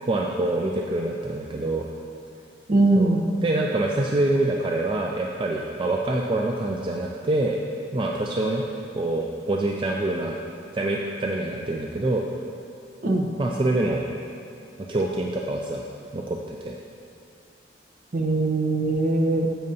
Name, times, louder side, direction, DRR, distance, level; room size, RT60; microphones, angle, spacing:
voice 1, 0.0-1.9 3.0-3.1 3.4-7.6 7.9-8.7 8.9-10.4 10.7-12.3 13.4-14.0 14.8-15.9 16.1-16.8, right 2 dB, 30° right, 0 dB, 0.4 m, -25 dB
voice 2, 2.7-3.2 13.0-13.3 18.1-19.5, right 2 dB, 50° right, 2 dB, 0.7 m, -21 dB
10.5 x 7.6 x 2.7 m, 2.5 s
head